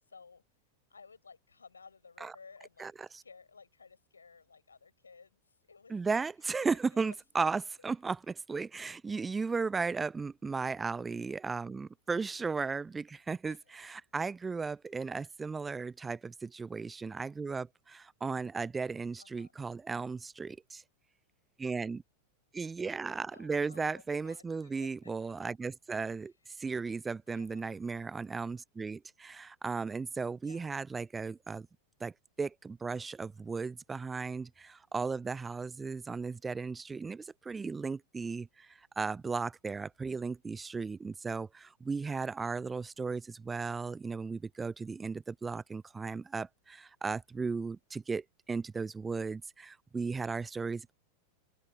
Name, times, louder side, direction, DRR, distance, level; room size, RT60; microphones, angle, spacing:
voice 1, 0.1-0.4 0.9-6.0 6.6-7.2 7.8-8.1 13.5-13.9 19.2-19.5 23.3-25.3 26.5-26.6 27.3-27.8 30.4-30.8, left 5 dB, 75° left, 6.8 m, -57 dB
voice 2, 2.8-3.2 5.9-20.8 21.6-22.0 22.5-26.3 26.6-31.7 32.0-32.1 32.4-50.9, right 4 dB, 15° right, 0.4 m, -36 dB
open air
figure-of-eight pair, 90°, 0 cm